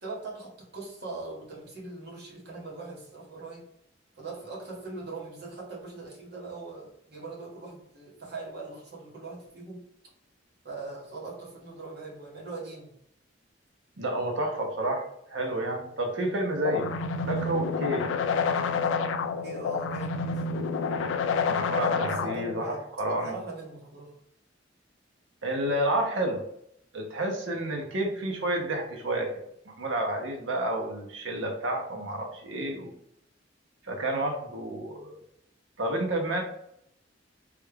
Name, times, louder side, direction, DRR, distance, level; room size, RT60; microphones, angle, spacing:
voice 1, 0.0-3.6 4.2-9.8 10.6-13.0 19.4-20.4 21.8-22.3 22.6-24.2, right 3 dB, 60° right, -3 dB, 1.2 m, -41 dB
voice 2, 14.0-16.9 17.3-18.1 21.5-23.3 25.4-26.4 26.9-29.3 29.7-32.9 33.9-35.2 35.8-36.4, right 1 dB, 85° right, 2 dB, 0.7 m, -30 dB
sound 1, 16.6-22.6, left 5 dB, 85° left, 0.3 m, -28 dB
3.2 x 2.3 x 3.2 m, 0.74 s
head